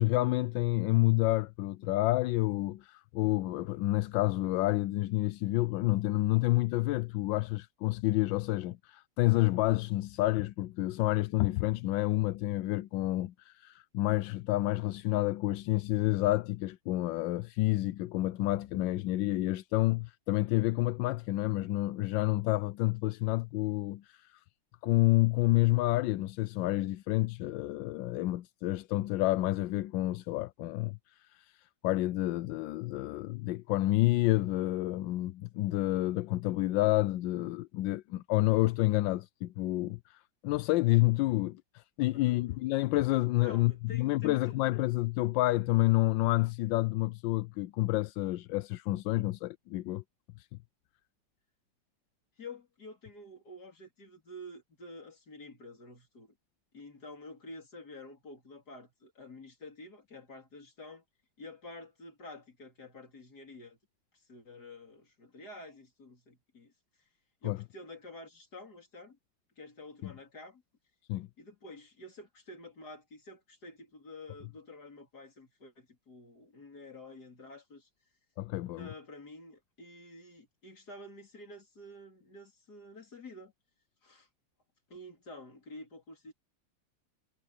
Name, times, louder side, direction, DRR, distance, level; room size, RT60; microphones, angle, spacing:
voice 1, 0.0-24.4 24.8-50.0 50.4-50.5 67.4-67.6 70.0-70.1 71.1-71.3 78.4-78.9, left 18 dB, 85° left, 1.3 m, -29 dB
voice 2, 42.1-42.6 43.4-44.6 52.4-56.3 56.7-61.0 61.4-63.8 64.1-66.7 67.4-69.2 69.6-70.6 71.4-77.9 78.7-83.5 84.0-84.3 84.9-86.3, left 2 dB, 55° left, 4.0 m, -49 dB
omnidirectional pair, 2.0 m